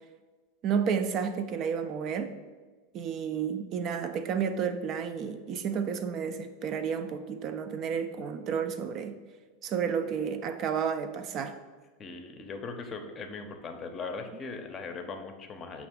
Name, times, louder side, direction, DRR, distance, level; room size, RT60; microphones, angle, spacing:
voice 1, 0.6-2.4 2.9-9.2 9.6-11.6, right 7 dB, 45° right, 8 dB, 0.3 m, -31 dB
voice 2, 12.0-15.9, left 4 dB, 30° left, 5 dB, 0.6 m, -39 dB
5.8 x 2.4 x 3.6 m, 1.3 s
hypercardioid pair, 95°, 0 cm